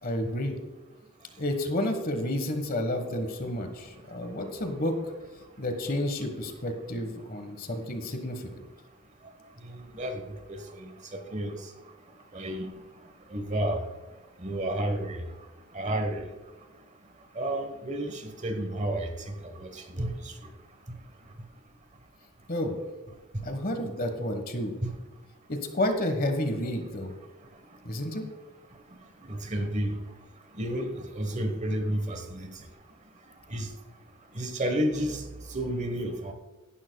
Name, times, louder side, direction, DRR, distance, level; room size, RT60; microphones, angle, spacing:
voice 1, 0.0-0.5 1.4-5.0 5.6-8.5 22.5-22.7 23.4-24.7 25.5-27.1 27.8-28.2, left 1 dB, 40° left, 6 dB, 1.4 m, -30 dB
voice 2, 9.6-10.2 10.5-11.6 12.3-12.7 13.3-13.8 14.4-15.2 15.7-16.3 17.4-19.1 19.6-20.3 24.8-24.9 29.3-30.0 30.5-32.5 33.5-33.7 34.3-35.2 35.5-36.3, right 1 dB, 30° right, 6 dB, 1.2 m, -31 dB
17.0 x 11.0 x 2.3 m, 1.2 s
head